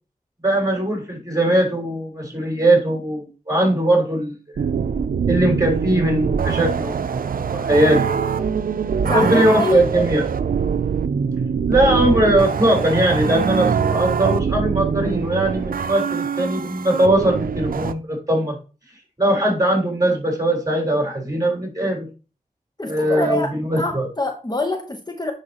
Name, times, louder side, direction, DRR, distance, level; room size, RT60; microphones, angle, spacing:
voice 1, 0.4-4.7 5.3-7.2 7.5-8.3 9.1-10.2 11.7-18.6 19.2-22.1 22.8-24.1, right 1 dB, 25° right, 3.8 m, -20 dB
sound 1, 4.6-17.9, right 6 dB, 90° right, 0.4 m, -23 dB
voice 2, 9.0-9.9 22.8-25.3, left 1 dB, 30° left, 1.0 m, -25 dB
10.0 x 4.7 x 2.9 m
wide cardioid pair, 45°, 14 cm